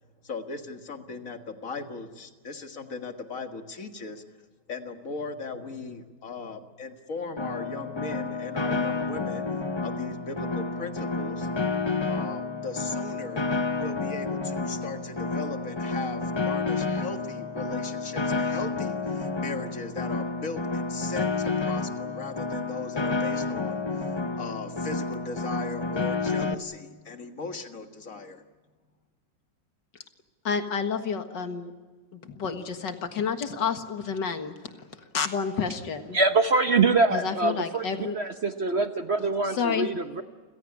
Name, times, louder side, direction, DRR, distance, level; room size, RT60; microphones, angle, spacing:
voice 1, 0.2-4.2 4.7-9.5 9.8-11.5 12.1-13.4 13.8-28.4, left 4 dB, 50° left, 6 dB, 2.1 m, -38 dB
Piano, 7.4-26.5, left 3 dB, 25° left, 0.6 m, -30 dB
voice 2, 30.4-31.7 32.1-34.5 35.1-36.2 37.1-38.2 39.5-39.9, left 6 dB, 80° left, 7 dB, 2.3 m, -29 dB
voice 3, 36.1-40.2, right 3 dB, 45° right, 8 dB, 1.1 m, -24 dB
29.5 x 16.5 x 9.8 m, 1.4 s
omnidirectional pair, 1.9 m